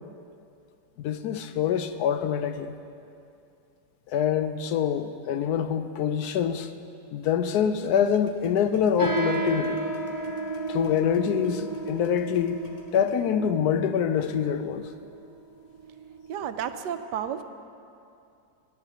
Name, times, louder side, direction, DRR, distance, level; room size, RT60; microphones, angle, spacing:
voice 1, 1.0-2.7 4.1-6.7 7.1-9.8 10.7-12.6 12.9-14.9, left 8 dB, 75° left, 10 dB, 1.1 m, -25 dB
sound 1, 7.5-13.2, left 3 dB, 25° left, 1.0 m, -45 dB
sound 2, 9.0-16.8, right 3 dB, 65° right, 2.2 m, -33 dB
voice 2, 16.3-17.4, right 9 dB, 90° right, 10 dB, 1.2 m, -31 dB
20.5 x 11.0 x 2.9 m, 2.6 s
omnidirectional pair, 1.8 m